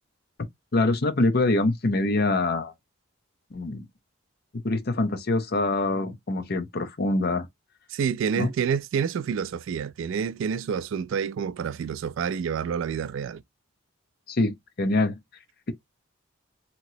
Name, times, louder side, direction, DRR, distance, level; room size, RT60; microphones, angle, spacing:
voice 1, 0.7-2.7 3.5-3.8 4.6-7.5 8.4-8.5 14.3-15.1, left 2 dB, 50° left, 0.7 m, -24 dB
voice 2, 7.9-13.4, right 7 dB, 65° right, 0.3 m, -28 dB
2.9 x 2.9 x 2.7 m
head